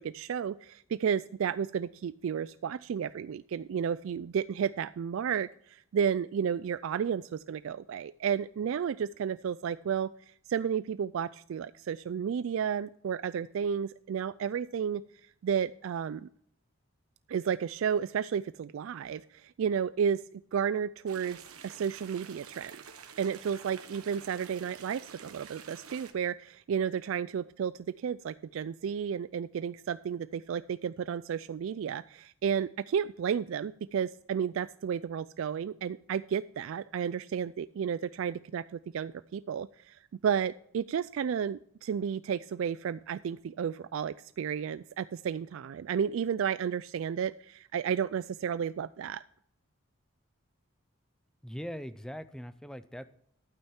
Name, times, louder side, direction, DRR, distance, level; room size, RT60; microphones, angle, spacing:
voice 1, 0.0-16.3 17.3-21.4 21.6-22.8 23.2-49.2, right 7 dB, 65° right, 15 dB, 0.3 m, -32 dB
sound 1, 21.1-26.1, right 7 dB, 85° right, 1.3 m, -49 dB
voice 2, 51.4-53.1, equal, 5° left, 12 dB, 0.4 m, -41 dB
12.0 x 9.0 x 4.4 m, 0.69 s
head